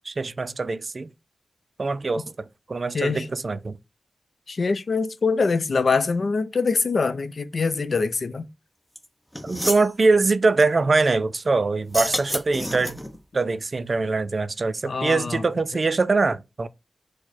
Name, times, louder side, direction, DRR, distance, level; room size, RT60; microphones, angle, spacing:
voice 1, 0.1-1.1 1.8-3.8 9.4-13.0 13.3-16.7, right 3 dB, 55° right, 0.3 m, -23 dB
voice 2, 2.9-3.3 4.5-8.5 14.8-15.4, left 4 dB, 70° left, 0.4 m, -24 dB
sound 1, 8.9-9.0 9.3-9.9 11.8-13.2, equal, 5° left, 0.7 m, -29 dB
4.6 x 2.1 x 4.3 m
wide cardioid pair, 75°, 0 cm